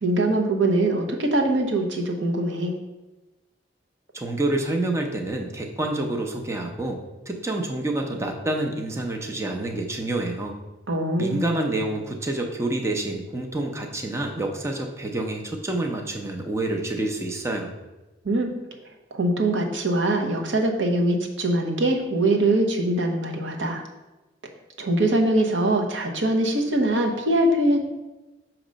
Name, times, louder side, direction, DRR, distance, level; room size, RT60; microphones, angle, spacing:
voice 1, 0.0-2.7 10.9-11.4 18.2-18.5 19.1-23.8 24.8-27.8, right 1 dB, 85° right, 2 dB, 0.9 m, -22 dB
voice 2, 4.1-10.6 11.2-17.7, right 2 dB, 15° right, 2 dB, 0.5 m, -28 dB
6.3 x 3.0 x 5.1 m, 1.1 s
head